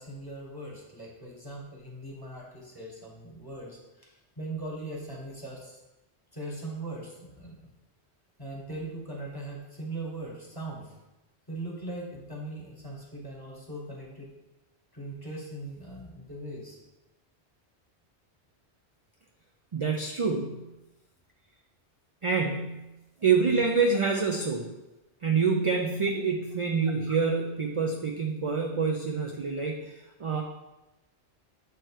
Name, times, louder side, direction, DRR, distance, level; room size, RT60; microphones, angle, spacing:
voice 1, 0.0-5.8 6.3-7.6 8.4-10.9 11.5-14.3 14.9-16.8, right 2 dB, 20° left, -3 dB, 1.4 m, -40 dB
voice 2, 19.7-20.7 22.2-22.9 23.2-24.7 25.2-30.4, right 5 dB, 50° right, 2 dB, 0.4 m, -27 dB
7.7 x 3.1 x 4.7 m, 1.0 s
omnidirectional pair, 1.1 m